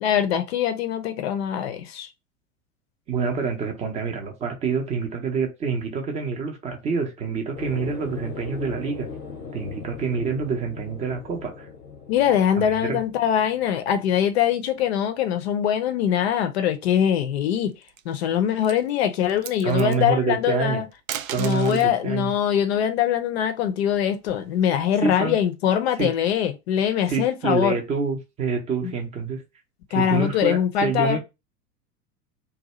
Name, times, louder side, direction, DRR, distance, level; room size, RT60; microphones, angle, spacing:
voice 1, 0.0-2.1 12.1-17.7 18.1-20.9 21.4-27.8 28.8-28.9 29.9-31.2, left 9 dB, 45° left, 0.6 m, -23 dB
voice 2, 3.1-9.1 9.5-11.7 12.6-13.0 19.6-20.8 21.3-22.3 25.0-25.4 26.0-26.1 27.1-29.4 29.9-31.2, right 5 dB, 15° right, 0.6 m, -27 dB
sound 1, 7.5-14.4, left 5 dB, 90° left, 0.7 m, -39 dB
sound 2, 17.7-18.2 18.6-18.8 19.2-20.0 20.9-21.9 23.4-24.6, right 10 dB, 60° right, 0.5 m, -36 dB
2.6 x 2.3 x 4.1 m
figure-of-eight pair, 90°, 47 cm